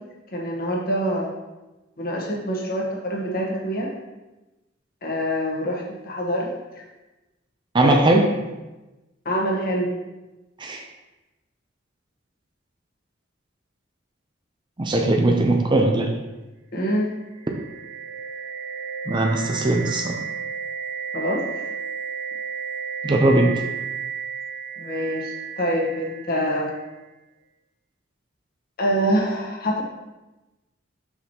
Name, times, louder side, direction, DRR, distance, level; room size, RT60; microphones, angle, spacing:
voice 1, 0.3-1.3 2.0-3.9 5.0-6.5 6.7-6.8 7.8-8.0 9.2-9.9 16.7-17.1 21.1-21.7 24.8-26.7 28.8-29.8, equal, 50° left, -2 dB, 1.2 m, -25 dB
voice 2, 7.7-8.2 10.6-10.8 14.8-16.1 19.1-20.2 23.0-23.5, right 2 dB, 25° right, 3 dB, 0.5 m, -19 dB
sound 1, 17.1-27.0, right 6 dB, 90° right, 0.7 m, -33 dB
6.2 x 5.9 x 2.9 m, 1.1 s
head